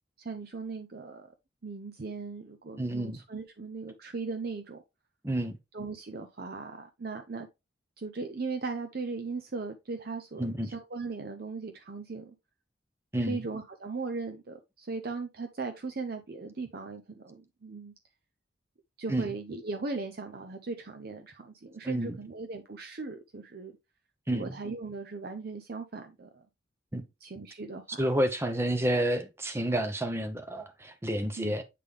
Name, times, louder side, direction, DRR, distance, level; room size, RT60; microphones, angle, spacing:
voice 1, 0.2-1.3 1.6-4.8 5.7-7.5 8.0-12.3 13.2-17.9 19.0-23.8 24.3-26.4 27.2-28.1 31.4-31.6, right 4 dB, 50° right, 0.6 m, -38 dB
voice 2, 2.8-3.2 5.2-5.6 10.4-10.7 13.1-13.4 19.1-19.3 21.8-22.2 24.3-24.5 26.9-27.0 28.0-31.6, right 1 dB, 15° right, 0.7 m, -29 dB
8.4 x 3.7 x 3.3 m
head